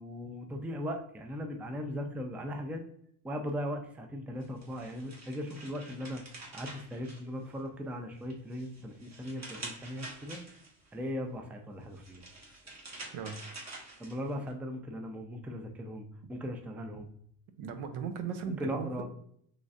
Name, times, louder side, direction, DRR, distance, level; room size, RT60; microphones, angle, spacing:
voice 1, 0.0-2.8 3.2-6.2 6.5-10.4 10.9-12.2 14.0-17.1 18.6-19.1, equal, 5° right, 4 dB, 0.3 m, -38 dB
sound 1, 4.4-7.8 8.2-10.9 11.8-14.5, right 2 dB, 30° right, 1.3 m, -47 dB
voice 2, 17.6-18.9, right 6 dB, 75° right, 8 dB, 0.7 m, -37 dB
3.9 x 3.2 x 2.4 m, 0.68 s
cardioid pair, 85°, 50 cm